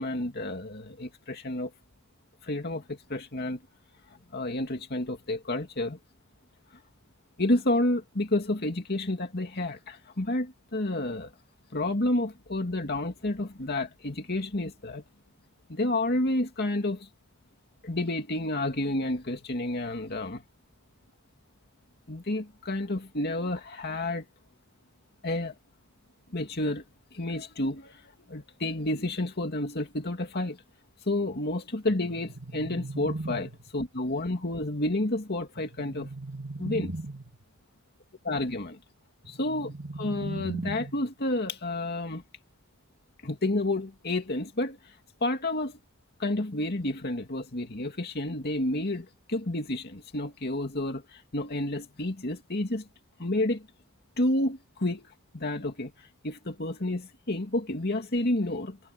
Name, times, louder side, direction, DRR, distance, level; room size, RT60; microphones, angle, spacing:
voice 1, 0.0-1.7 2.4-3.6 4.1-6.0 7.4-11.3 11.7-15.0 15.7-17.1 17.8-20.4 22.1-24.3 25.2-25.5 26.3-26.8 27.1-30.6 31.1-36.1 36.6-36.9 38.2-38.8 39.3-42.2 43.2-45.0 45.2-45.8 46.2-52.9 53.2-53.7 54.2-58.8, left 1 dB, 50° left, 2.4 m, -30 dB
sound 1, 31.9-33.9 35.6-37.4 39.2-41.2, right 2 dB, 50° right, 3.3 m, -38 dB
head